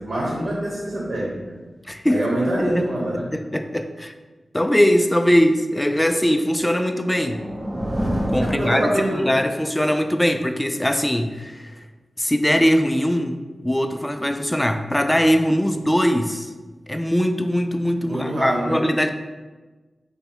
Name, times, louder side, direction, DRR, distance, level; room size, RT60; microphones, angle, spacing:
voice 1, 0.0-1.4 2.1-3.3 8.4-9.4 15.5-15.9 18.1-18.8, right 1 dB, 60° right, -3 dB, 1.0 m, -25 dB
voice 2, 1.9-2.2 2.6-2.8 3.1-4.1 4.5-7.4 8.3-11.8 12.2-13.4 13.6-16.5 16.9-19.1, equal, 10° left, 7 dB, 0.3 m, -21 dB
sound 1, 6.8-9.5, equal, 25° right, 0.7 m, -28 dB
5.3 x 2.2 x 4.6 m, 1.3 s
wide cardioid pair, 90°, 0 cm